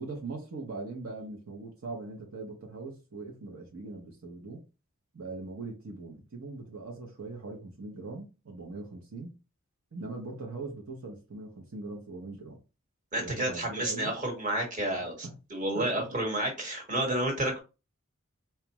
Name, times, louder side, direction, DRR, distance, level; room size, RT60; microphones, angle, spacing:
voice 1, 0.0-4.6 5.1-9.3 9.9-12.6 13.2-14.2 14.9-15.4 15.7-16.2, right 3 dB, 70° right, 0.9 m, -41 dB
voice 2, 13.1-17.6, right 1 dB, 35° right, 1.3 m, -30 dB
4.4 x 2.4 x 3.0 m
head